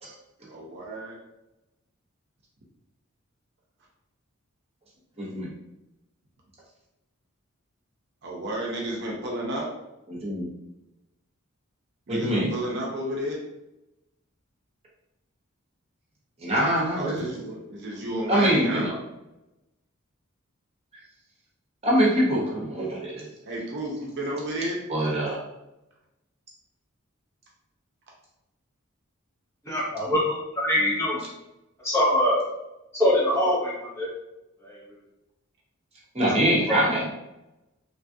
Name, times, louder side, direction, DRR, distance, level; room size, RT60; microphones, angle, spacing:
voice 1, 0.5-1.2 8.2-9.7 12.1-13.4 16.9-18.9 23.4-24.8, right 1 dB, 55° right, -2 dB, 0.6 m, -32 dB
voice 2, 5.2-5.5 10.1-10.5 12.1-12.5 16.4-17.3 18.3-18.9 21.8-23.3 24.9-25.4 36.1-37.1, right 1 dB, 30° right, -4 dB, 0.9 m, -24 dB
voice 3, 29.7-31.2 31.8-32.4 32.9-34.1 34.6-34.7, left 1 dB, 15° left, -5 dB, 0.7 m, -23 dB
3.2 x 2.4 x 2.6 m, 0.94 s
head